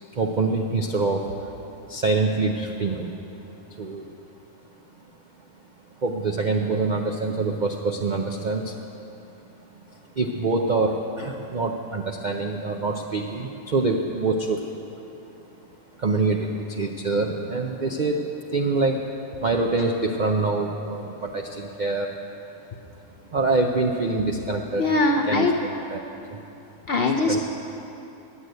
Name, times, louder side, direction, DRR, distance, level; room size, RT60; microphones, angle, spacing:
voice 1, 0.1-1.3 1.9-3.2 3.7-4.1 6.0-8.8 9.9-14.7 16.0-19.1 19.4-22.1 23.3-24.8 25.3-25.5 25.9-26.4 27.3-27.4, right 3 dB, 65° right, 2 dB, 0.4 m, -25 dB
voice 2, 24.8-25.5 26.9-27.4, left 2 dB, 55° left, 1 dB, 0.7 m, -21 dB
10.5 x 8.0 x 9.0 m, 3.0 s
omnidirectional pair, 1.7 m